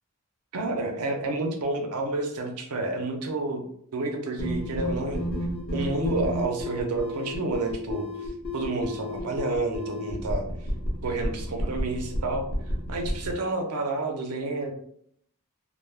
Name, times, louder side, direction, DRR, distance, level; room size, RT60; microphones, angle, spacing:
voice 1, 0.5-3.6 3.9-5.2 5.7-8.1 8.5-10.5 11.0-12.4 12.9-14.7, right 2 dB, 80° right, 3 dB, 0.6 m, -29 dB
sound 1, 4.4-13.3, equal, 40° left, 0.7 m, -31 dB
2.2 x 2.0 x 3.2 m, 0.67 s
head